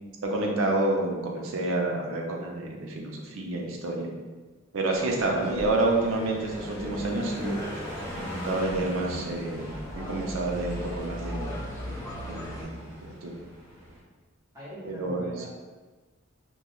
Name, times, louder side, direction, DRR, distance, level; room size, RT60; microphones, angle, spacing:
voice 1, 0.3-4.1 4.7-7.6 8.1-11.6 12.3-13.4 14.9-15.2, right 2 dB, 90° right, 0 dB, 0.5 m, -29 dB
sound 1, 4.9-12.6, left 1 dB, 15° left, 0.3 m, -40 dB
Car passing by, 5.5-14.0, equal, 45° right, 1.0 m, -39 dB
voice 2, 14.5-15.5, right 1 dB, 15° right, -13 dB, 1.1 m, -41 dB
2.3 x 2.2 x 2.9 m, 1.3 s
head